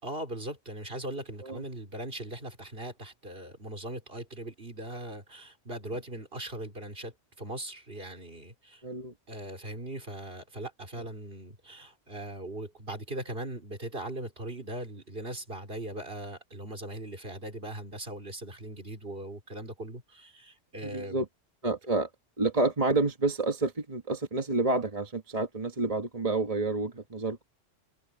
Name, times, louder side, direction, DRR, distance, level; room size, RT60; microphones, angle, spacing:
voice 1, 0.0-8.8 9.3-21.2, right 1 dB, 50° right, 4.2 m, -40 dB
voice 2, 8.8-9.1 20.8-21.2 21.6-22.1 22.4-27.4, right 3 dB, 30° right, 1.4 m, -29 dB
omnidirectional pair, 1.2 m